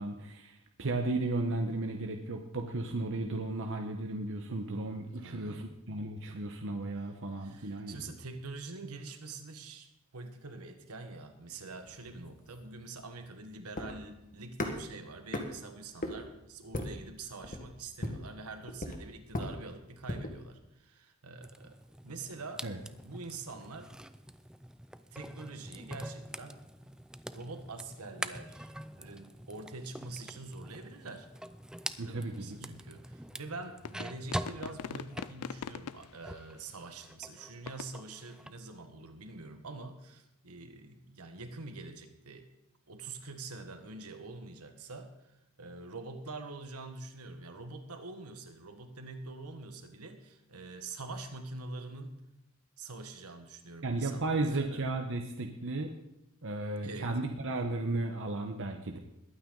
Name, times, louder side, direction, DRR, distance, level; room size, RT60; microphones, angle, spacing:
voice 1, 0.0-8.1 22.6-22.8 32.0-32.7 53.8-55.9 56.4-59.0, right 2 dB, 60° right, 3 dB, 1.1 m, -34 dB
voice 2, 5.1-5.7 7.4-21.8 22.0-22.7 23.0-23.9 25.1-26.6 27.3-31.3 32.0-42.5 42.9-52.2 52.8-54.8 56.8-57.2, right 3 dB, 80° right, 7 dB, 1.5 m, -45 dB
sound 1, 11.7-20.4, left 1 dB, 40° left, 1.5 m, -40 dB
sound 2, 21.4-36.6 36.9-38.6, right 1 dB, 5° right, 0.4 m, -45 dB
sound 3, 32.9-33.0 33.8-36.7 37.2-37.3 37.7-37.9, left 7 dB, 85° left, 0.4 m, -42 dB
21.0 x 9.0 x 4.0 m, 0.85 s
head